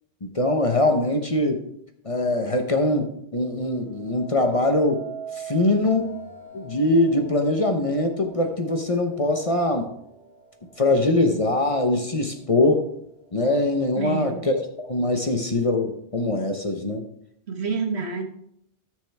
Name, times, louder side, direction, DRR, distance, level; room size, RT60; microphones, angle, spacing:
voice 1, 0.2-1.6 2.0-5.1 5.4-6.2 6.5-9.9 10.8-12.8 13.3-17.1, left 2 dB, 35° left, 4 dB, 0.9 m, -22 dB
sound 1, 3.8-12.9 13.4-13.9, right 3 dB, 75° left, 1.5 m, -42 dB
voice 2, 14.0-14.5 17.5-18.2, right 4 dB, 75° right, 4 dB, 1.6 m, -28 dB
13.5 x 6.4 x 3.4 m, 0.72 s
omnidirectional pair, 1.1 m